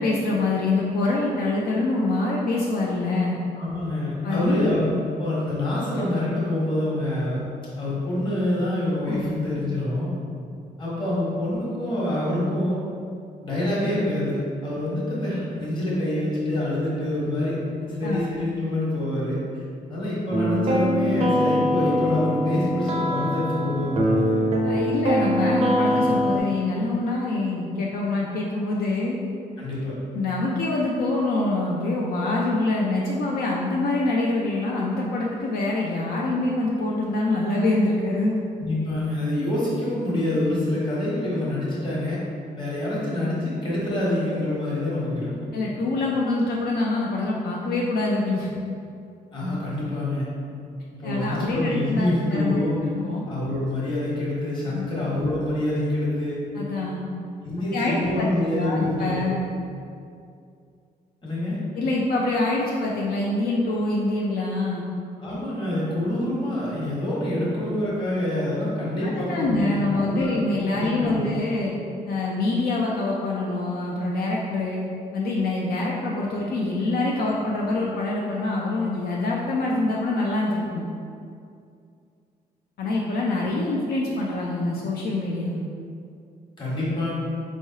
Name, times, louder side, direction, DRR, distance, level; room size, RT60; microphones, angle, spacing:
voice 1, 0.0-3.4 4.2-4.7 9.1-9.3 17.8-18.2 24.6-29.2 30.1-38.4 45.5-48.5 51.0-52.7 53.0-53.3 54.7-55.0 56.5-57.0 57.7-58.3 58.6-59.5 61.8-64.8 69.0-71.7 72.1-74.8 75.1-80.9 82.8-85.6, left 2 dB, 70° left, -3 dB, 0.5 m, -25 dB
voice 2, 3.6-4.9 5.2-7.4 7.8-10.1 10.8-12.8 13.4-17.6 17.8-19.6 19.9-24.4 29.6-29.9 38.6-42.2 42.6-45.3 49.3-50.3 51.0-52.7 53.3-56.4 57.4-59.3 61.2-61.6 65.2-70.3 70.7-71.2 86.6-87.1, left 1 dB, 30° left, -7 dB, 1.2 m, -26 dB
sound 1, 20.3-26.4, equal, 40° right, 0.4 m, -23 dB
4.6 x 3.1 x 2.7 m, 2.4 s
cardioid pair, 150°, 16 cm